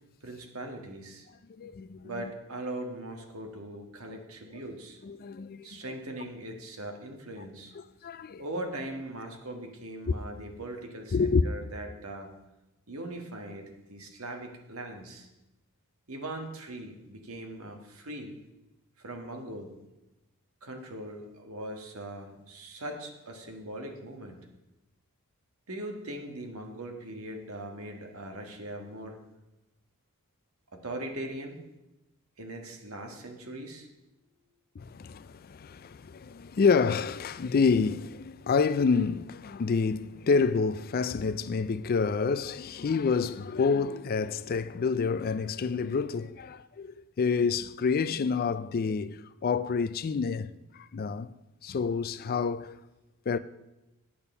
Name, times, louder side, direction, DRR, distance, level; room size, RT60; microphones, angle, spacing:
voice 1, 0.2-1.3 2.0-5.0 5.6-7.7 8.4-12.3 12.9-15.3 16.1-18.4 19.0-19.8 20.6-24.5 25.7-29.2 30.7-31.6 32.4-33.9, right 1 dB, 70° right, 1.6 m, -40 dB
voice 2, 1.6-2.3 5.0-6.0 7.8-8.4 11.1-11.4 34.8-51.3 51.6-52.8 53.3-53.4, left 5 dB, 40° left, 0.4 m, -28 dB
8.9 x 8.7 x 5.5 m
head